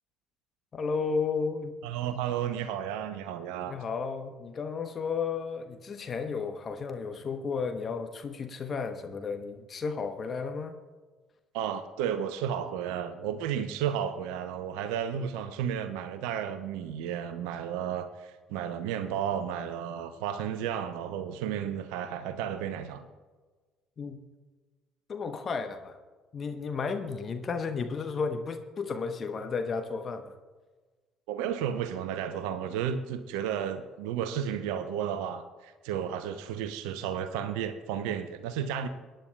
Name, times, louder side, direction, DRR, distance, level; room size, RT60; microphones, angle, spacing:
voice 1, 0.7-1.7 3.7-10.7 24.0-24.2 25.1-26.0 26.3-30.3, left 5 dB, 35° left, 7 dB, 0.9 m, -33 dB
voice 2, 1.8-3.7 11.5-23.1 31.3-38.9, right 9 dB, 65° right, 11 dB, 0.6 m, -33 dB
23.0 x 10.0 x 2.3 m, 1.3 s
figure-of-eight pair, 55°, 0 cm